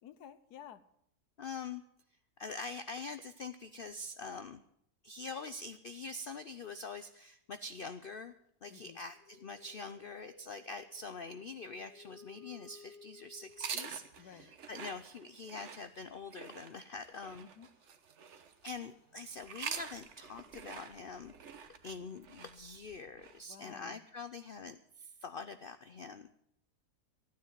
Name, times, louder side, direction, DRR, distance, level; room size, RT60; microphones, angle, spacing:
voice 1, 0.0-0.8 8.7-9.0 14.2-14.5 17.4-17.7 23.5-24.1, left 9 dB, 80° left, 13 dB, 1.3 m, -53 dB
voice 2, 1.4-1.8 2.4-4.6 5.0-8.3 8.6-17.5 18.6-21.3 21.8-26.3, left 3 dB, 65° left, 11 dB, 0.5 m, -44 dB
sound 1, 9.0-14.2 16.1-16.2 16.4-21.9, left 4 dB, 45° left, 2.2 m, -61 dB
sound 2, 13.5-18.9 19.4-23.4, right 6 dB, 50° right, 1.2 m, -46 dB
14.5 x 9.7 x 7.3 m, 0.74 s
omnidirectional pair, 1.7 m